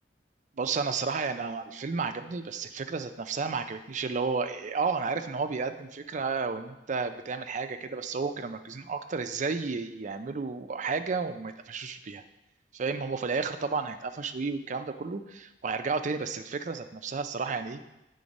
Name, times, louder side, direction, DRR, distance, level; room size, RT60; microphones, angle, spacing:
voice 1, 0.6-12.2 12.7-17.8, right 4 dB, 45° right, 9 dB, 0.5 m, -32 dB
8.6 x 3.8 x 5.2 m, 0.95 s
head